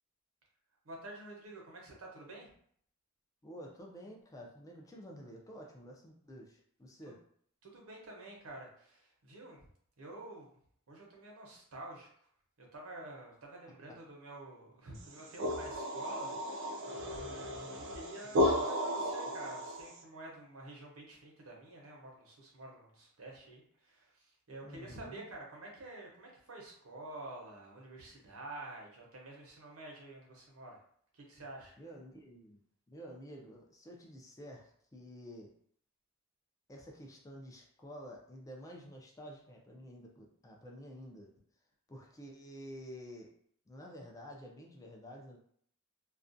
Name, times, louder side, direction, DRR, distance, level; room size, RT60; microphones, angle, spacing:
voice 1, 0.8-2.5 7.0-7.1 7.6-9.7 10.0-10.5 10.9-12.1 12.6-16.3 16.6-30.8 31.1-31.7, right 2 dB, 85° right, -1 dB, 0.8 m, -49 dB
voice 2, 3.4-7.2 13.9-14.0 24.6-25.3 31.8-32.6 32.9-35.5 36.7-41.3 41.9-43.3 43.7-45.4, equal, 15° left, 0 dB, 0.3 m, -50 dB
sound 1, 15.0-20.0, equal, 60° right, 0.4 m, -34 dB
2.4 x 2.1 x 2.5 m, 0.62 s
head